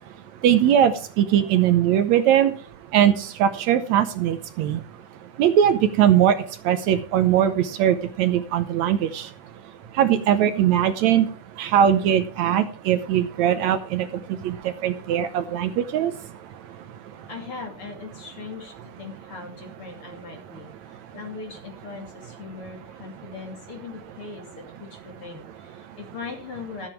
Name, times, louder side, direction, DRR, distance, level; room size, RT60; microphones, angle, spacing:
voice 1, 0.4-2.5 2.9-4.8 5.4-9.3 10.0-11.3 11.6-16.1, right 10 dB, 75° right, 11 dB, 2.0 m, -20 dB
voice 2, 17.3-26.9, left 4 dB, 45° left, 2 dB, 3.5 m, -39 dB
13.5 x 8.9 x 4.8 m, 0.41 s
omnidirectional pair, 3.5 m